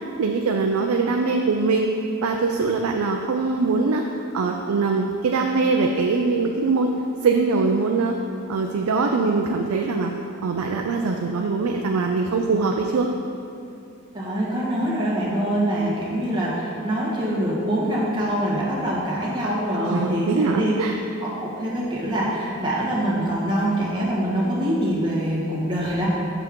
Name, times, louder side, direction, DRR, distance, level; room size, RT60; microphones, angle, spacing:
voice 1, 0.2-1.9 2.2-4.0 4.3-6.9 7.2-8.2 8.5-10.1 10.4-13.1 19.7-20.9, right 4 dB, 75° right, 2 dB, 0.4 m, -22 dB
voice 2, 14.1-20.8 21.2-26.1, right 1 dB, 20° right, -7 dB, 1.4 m, -24 dB
6.8 x 5.9 x 3.7 m, 2.6 s
head